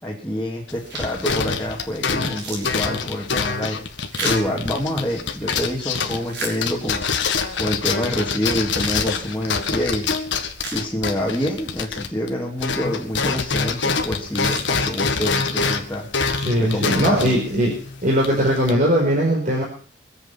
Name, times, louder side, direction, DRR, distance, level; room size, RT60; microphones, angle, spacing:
voice 1, 0.0-3.8 4.2-10.1 10.7-16.1 16.6-17.4, equal, 10° left, -4 dB, 2.6 m, -27 dB
sound 1, 0.7-12.3 12.6-18.7, left 5 dB, 80° left, 1.8 m, -25 dB
sound 2, 0.8-1.3 1.8-1.9 2.2-5.3 5.9-7.1 7.7-7.8 8.5-9.8 10.2-10.3 10.6-11.4 11.8-11.9 13.9-14.0 14.2-15.3 15.9-16.3 16.8-18.1, right 2 dB, 65° right, 6.2 m, -36 dB
voice 2, 16.3-17.7 18.0-19.6, equal, 45° right, -2 dB, 4.7 m, -19 dB
24.0 x 8.1 x 5.9 m, 0.42 s
head